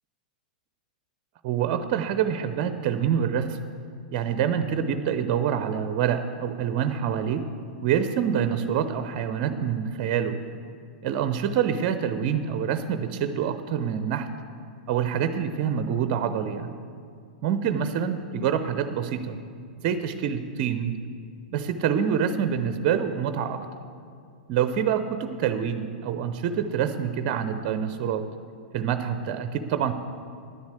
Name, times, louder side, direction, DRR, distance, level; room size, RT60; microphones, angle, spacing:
voice 1, 1.4-3.6 4.1-7.4 7.8-10.4 11.0-14.3 14.9-16.7 17.4-19.4 19.8-20.9 21.5-23.6 24.5-28.2 28.7-29.9, right 8 dB, 45° right, 10 dB, 0.6 m, -26 dB
11.0 x 7.2 x 7.7 m, 2.3 s
hypercardioid pair, 105°, 5 cm